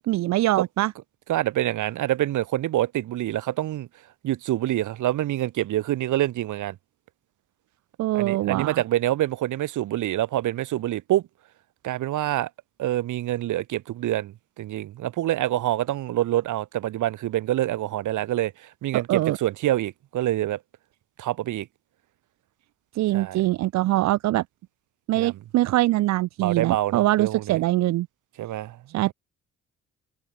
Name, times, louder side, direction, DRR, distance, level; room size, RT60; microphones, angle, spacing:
voice 1, 0.1-0.9 8.0-8.8 18.9-19.4 22.9-24.4 25.1-28.1 28.9-29.1, right 16 dB, 65° right, 0.4 m, -23 dB
voice 2, 1.3-3.9 4.2-6.8 8.1-11.2 11.8-12.5 12.8-20.6 21.2-21.7 23.1-23.4 25.1-25.4 26.4-27.6 28.4-28.8, right 14 dB, 80° right, 2.3 m, -26 dB
cardioid pair, 90°, 30 cm